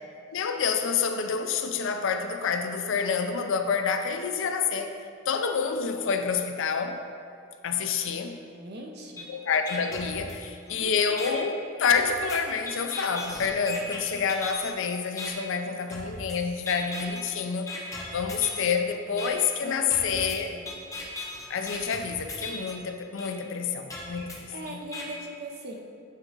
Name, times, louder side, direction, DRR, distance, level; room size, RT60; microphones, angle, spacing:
voice 1, 0.3-4.9 5.3-7.0 7.6-8.4 9.3-17.7 18.1-20.5 21.5-24.8, left 6 dB, 65° left, 6 dB, 0.5 m, -28 dB
voice 2, 8.5-9.3 10.4-10.5 10.8-11.2 19.6-20.6 24.1-24.3 24.5-25.8, right 1 dB, 50° right, 1 dB, 0.8 m, -40 dB
sound 1, 9.2-9.3 9.7-10.7 11.2-11.3 11.9-14.7 15.2-15.3 15.9-16.4 16.7-17.2 17.7-18.7 19.2-19.3 19.9-22.7 23.2-23.3 23.9-25.0, left 3 dB, 15° left, 0.8 m, -38 dB
9.1 x 3.7 x 3.9 m, 2.5 s
head